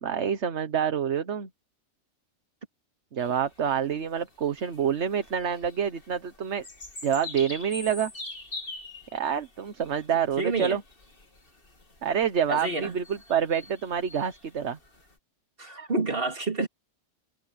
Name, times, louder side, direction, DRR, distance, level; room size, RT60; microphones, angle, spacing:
voice 1, 0.0-1.5 3.1-6.6 7.0-8.1 9.1-10.8 12.0-14.8, right 8 dB, 70° right, 1.4 m, -27 dB
sound 1, 3.2-15.1, left 2 dB, 50° left, 3.1 m, -45 dB
voice 2, 10.4-10.8 12.5-13.0 15.6-16.7, right 3 dB, 50° right, 3.3 m, -29 dB
omnidirectional pair, 1.2 m